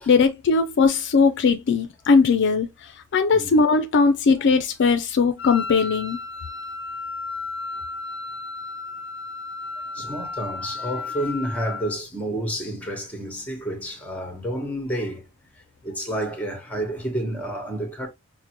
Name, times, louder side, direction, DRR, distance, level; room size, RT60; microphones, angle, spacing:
voice 1, 0.1-2.7 3.1-6.2, left 4 dB, 55° left, 0.4 m, -19 dB
Wind instrument woodwind instrument, 5.4-12.0, left 4 dB, 25° right, 1.3 m, -34 dB
voice 2, 9.9-15.2 15.8-18.1, right 1 dB, 5° left, 1.0 m, -30 dB
5.0 x 2.1 x 2.9 m
head